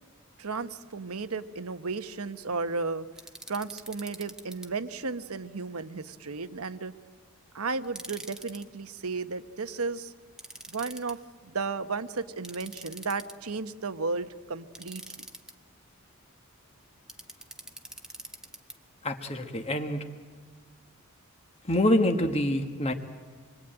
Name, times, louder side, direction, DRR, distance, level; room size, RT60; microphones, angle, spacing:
voice 1, 0.4-3.1 3.5-6.9 7.5-10.1 10.7-15.0, right 4 dB, 85° right, 10 dB, 1.1 m, -34 dB
sound 1, 3.2-4.7 7.8-8.6 10.4-11.1 12.4-13.5 14.7-15.5 17.1-18.7, right 1 dB, 5° right, 1.1 m, -44 dB
voice 2, 19.0-20.0 21.7-22.9, left 1 dB, 30° left, 5 dB, 1.4 m, -26 dB
26.5 x 22.5 x 9.0 m, 1.5 s
head